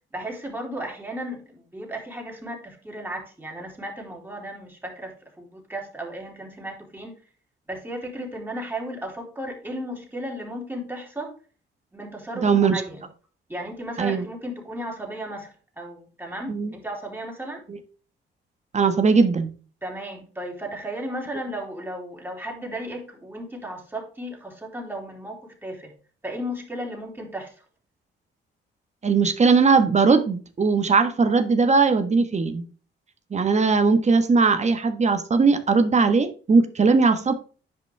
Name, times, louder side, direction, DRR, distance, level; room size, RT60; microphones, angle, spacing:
voice 1, 0.1-7.2 7.7-11.4 11.9-13.1 13.5-17.6 19.8-25.9 26.2-27.6, right 1 dB, 10° right, 0 dB, 3.3 m, -35 dB
voice 2, 12.4-12.8 14.0-14.2 16.5-16.7 17.7-17.8 18.7-19.5 29.0-32.6 33.3-37.3, right 4 dB, 35° right, 8 dB, 1.4 m, -19 dB
10.0 x 5.1 x 3.5 m, 0.38 s
cardioid pair, 90°, 20 cm